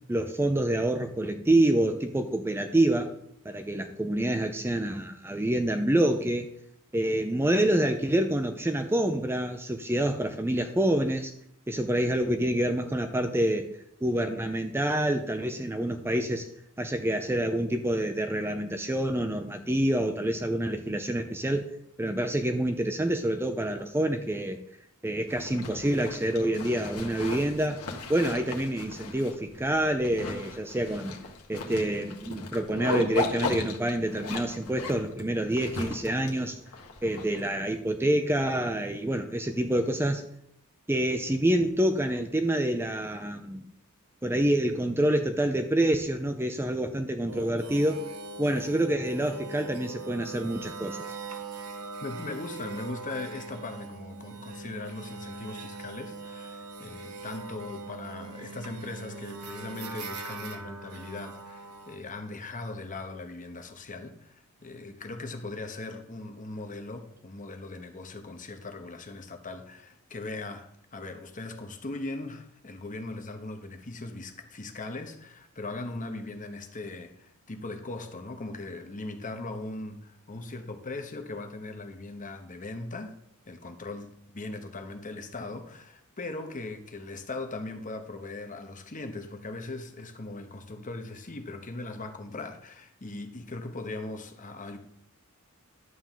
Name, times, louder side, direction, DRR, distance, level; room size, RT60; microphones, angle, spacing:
voice 1, 0.1-3.1 3.4-6.5 6.9-11.3 11.7-13.7 14.0-16.5 16.8-21.7 22.0-24.6 25.0-27.8 28.1-31.1 31.5-36.6 37.0-40.2 40.9-43.6 44.2-48.1 48.4-51.0, right 1 dB, 10° right, 0.5 m, -27 dB
Zipper (clothing), 25.3-37.8, left 3 dB, 85° left, 1.4 m, -37 dB
sound 1, 47.3-62.0, right 3 dB, 90° right, 1.1 m, -41 dB
voice 2, 52.0-83.2 83.5-94.8, left 2 dB, 35° left, 1.1 m, -39 dB
11.0 x 3.8 x 7.4 m
head